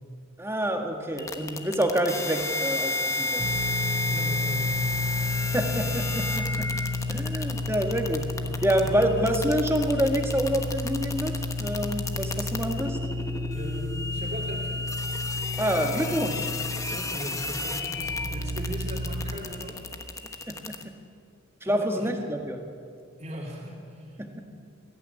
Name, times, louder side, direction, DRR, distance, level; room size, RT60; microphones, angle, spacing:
voice 1, 0.4-3.4 5.2-5.3 5.5-6.7 7.1-8.3 8.6-13.0 15.6-16.5 20.5-20.6 21.6-22.7 24.2-24.5, equal, 10° right, 4 dB, 1.7 m, -27 dB
sound 1, 1.2-20.8, left 3 dB, 15° left, 1.1 m, -33 dB
sound 2, 3.4-19.4, left 2 dB, 55° right, 3.0 m, -32 dB
voice 2, 4.0-5.1 8.8-9.0 13.5-14.9 16.9-19.9 21.7-22.1 23.2-24.2, equal, 35° right, -6 dB, 3.0 m, -38 dB
21.5 x 15.0 x 9.7 m, 2.3 s
head